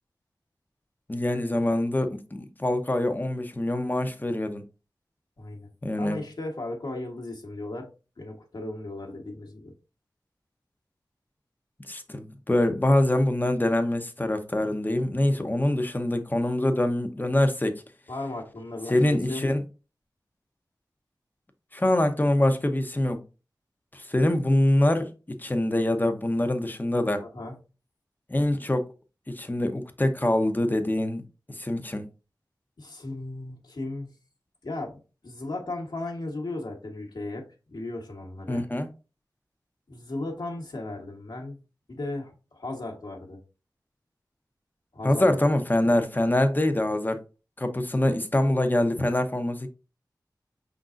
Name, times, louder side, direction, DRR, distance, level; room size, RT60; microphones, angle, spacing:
voice 1, 1.1-4.6 5.8-6.2 11.9-17.7 18.9-19.6 21.7-23.2 23.9-25.1 25.4-27.2 28.3-28.9 29.3-31.2 31.5-32.0 38.5-38.9 45.0-47.2 47.6-49.7, left 1 dB, 25° left, 0.8 m, -24 dB
voice 2, 5.4-5.7 6.0-7.9 8.2-9.7 18.1-19.4 27.2-27.6 32.8-34.1 34.6-38.6 39.9-41.6 41.9-43.4 44.9-45.3, left 2 dB, 70° left, 1.2 m, -36 dB
5.3 x 3.9 x 2.5 m
wide cardioid pair, 50°, 8 cm